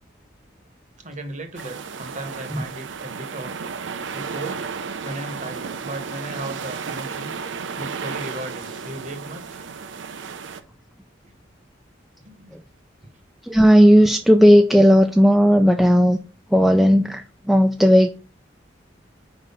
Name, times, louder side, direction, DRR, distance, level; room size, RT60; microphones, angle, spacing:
voice 1, 1.0-3.6 4.1-4.6 5.0-7.3 7.8-9.6 12.2-12.5, right 2 dB, 40° right, 1.1 m, -36 dB
sound 1, 1.5-10.6, right 5 dB, 75° right, 0.6 m, -33 dB
voice 2, 13.4-16.2 16.5-18.1, equal, ahead, 0.3 m, -14 dB
4.7 x 4.1 x 5.4 m
head